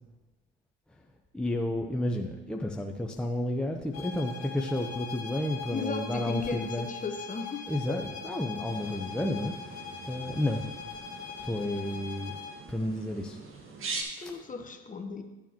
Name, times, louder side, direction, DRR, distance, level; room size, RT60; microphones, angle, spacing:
voice 1, 1.3-6.9 7.7-10.7 11.3-12.4 12.7-13.4 14.2-14.3, left 1 dB, 5° left, 2 dB, 0.8 m, -31 dB
sound 1, 3.9-12.6, left 6 dB, 45° left, 1.9 m, -41 dB
voice 2, 5.7-8.0 14.2-15.2, left 4 dB, 25° left, 5 dB, 1.0 m, -36 dB
sound 2, 8.6-14.0, right 3 dB, 40° right, 1.7 m, -43 dB
12.0 x 7.1 x 3.0 m, 1.1 s
hypercardioid pair, 80°, 31 cm